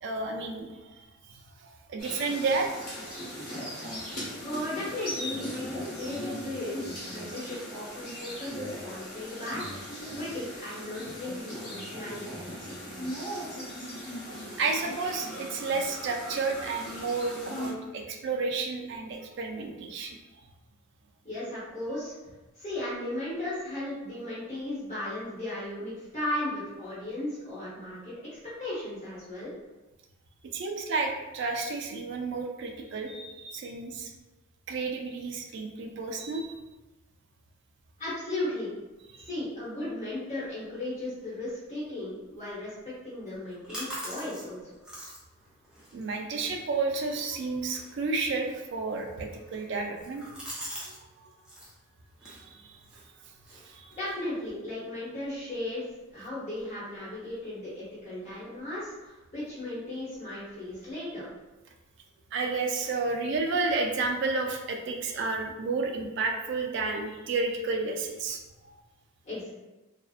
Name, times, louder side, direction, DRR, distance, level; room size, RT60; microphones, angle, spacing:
voice 1, 0.0-2.7 3.1-3.2 3.9-4.3 13.9-14.0 14.3-20.2 30.5-34.1 34.7-36.5 39.2-39.3 45.9-50.2 50.9-51.3 52.2-52.8 53.6-54.0 62.3-68.4, right 3 dB, 55° right, 3 dB, 0.3 m, -31 dB
sound 1, 2.0-17.7, equal, 75° left, 1.2 m, -39 dB
voice 2, 4.4-9.6 10.1-12.2 21.2-22.1 22.6-28.1 28.6-29.5 38.0-38.8 39.1-42.7 43.0-44.8 54.0-55.8 56.1-61.2 69.2-69.5, left 1 dB, 35° left, -10 dB, 0.9 m, -36 dB
sound 2, 43.3-51.0 51.3-51.7 52.2-54.5, equal, 5° right, 0.5 m, -45 dB
2.6 x 2.0 x 2.4 m, 1.1 s
head